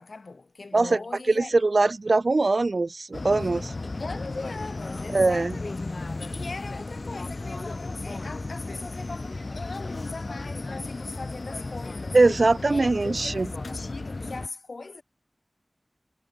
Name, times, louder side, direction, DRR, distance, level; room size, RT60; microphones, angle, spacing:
voice 1, 0.0-1.6 4.0-5.9 6.1-12.2 12.7-15.0, left 3 dB, 90° left, 2.8 m, -39 dB
voice 2, 1.3-3.7 5.1-5.6 12.1-13.5, right 3 dB, 75° right, 0.4 m, -21 dB
sound 1, 3.1-14.5, left 2 dB, 65° left, 2.6 m, -35 dB
wide cardioid pair, 55°, 0 cm